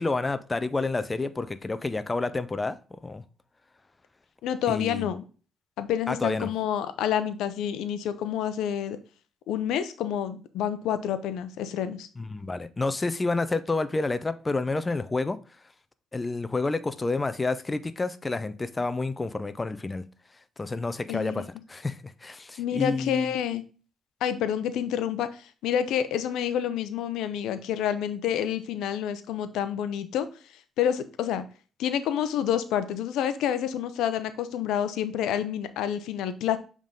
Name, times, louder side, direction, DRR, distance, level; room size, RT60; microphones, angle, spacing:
voice 1, 0.0-3.2 4.7-5.1 6.1-6.5 12.2-15.4 16.1-20.0 20.6-23.3, left 3 dB, 20° left, 0.5 m, -29 dB
voice 2, 4.4-5.2 5.8-9.0 9.5-12.1 21.1-21.4 22.6-23.6 24.2-30.3 30.8-31.4 31.8-36.6, left 9 dB, 85° left, 0.6 m, -28 dB
7.1 x 3.6 x 3.8 m
cardioid pair, 90°, 0 cm